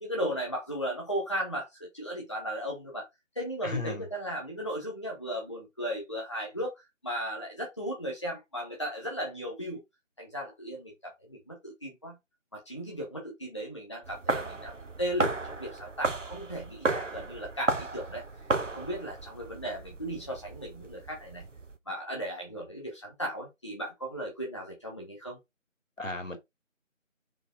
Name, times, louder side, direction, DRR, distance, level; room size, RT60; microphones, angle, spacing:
voice 1, 0.0-3.1 3.3-9.8 10.2-12.2 12.5-14.7 15.0-18.2 18.7-21.4 21.9-25.4, equal, 20° left, 1.2 m, -36 dB
voice 2, 3.6-4.0 26.0-26.4, left 2 dB, 70° left, 3.1 m, -34 dB
sound 1, 14.0-21.8, right 3 dB, 65° right, 1.1 m, -34 dB
6.1 x 4.6 x 3.8 m
figure-of-eight pair, 165°, 40 cm